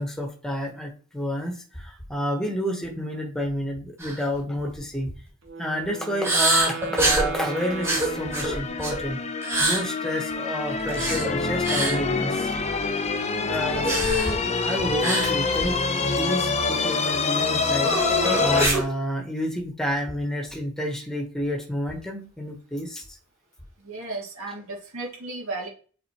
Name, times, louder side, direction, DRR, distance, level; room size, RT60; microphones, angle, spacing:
voice 1, 0.0-5.1 5.6-12.5 13.4-15.8 16.2-17.9 18.4-23.0, equal, 5° left, 2 dB, 1.2 m, -29 dB
sound 1, 4.0-4.2 4.6-4.8 6.2-7.3 7.8-9.0 9.4-9.8 10.9-11.3 11.6-12.0 13.8-14.3 15.0-15.3 15.6-15.7 16.2-16.3 17.8-18.8, right 2 dB, 15° right, 2.9 m, -24 dB
Wind instrument woodwind instrument, 5.4-9.1, right 6 dB, 60° right, 1.7 m, -36 dB
sound 2, 7.4-18.7, left 4 dB, 30° left, 0.7 m, -26 dB
voice 2, 23.8-25.7, right 2 dB, 85° right, -3 dB, 2.4 m, -34 dB
7.6 x 4.1 x 3.0 m, 0.39 s
head